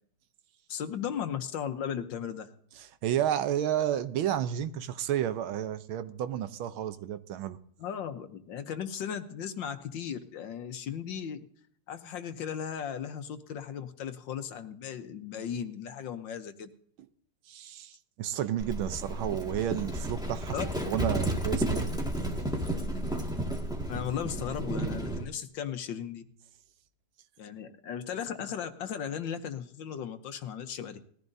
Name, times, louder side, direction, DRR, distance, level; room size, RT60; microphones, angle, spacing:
voice 1, 0.7-2.5 7.8-11.5 11.9-16.7 20.5-20.6 23.9-26.2 27.4-31.0, left 8 dB, 65° left, 1.5 m, -36 dB
voice 2, 2.8-7.6 17.5-20.6 20.9-21.9, right 11 dB, 75° right, 1.5 m, -31 dB
Livestock farm animals working animals, 18.6-25.3, right 1 dB, ahead, 1.4 m, -32 dB
19.5 x 14.5 x 2.7 m
omnidirectional pair, 2.4 m